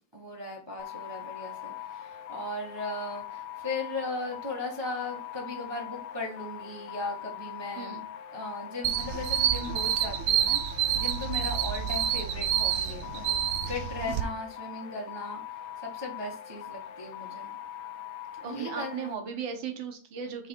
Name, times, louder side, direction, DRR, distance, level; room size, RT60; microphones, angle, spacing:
voice 1, 0.1-8.0 8.3-17.6 18.4-19.1, left 2 dB, 20° right, -2 dB, 0.8 m, -37 dB
sound 1, 0.8-19.1, left 10 dB, 80° left, 1.5 m, -42 dB
voice 2, 7.8-8.1 18.4-20.5, right 7 dB, 65° right, 5 dB, 1.8 m, -36 dB
sound 2, 8.8-14.2, right 11 dB, 85° right, 1.5 m, -28 dB
5.9 x 3.3 x 5.2 m, 0.39 s
omnidirectional pair, 2.3 m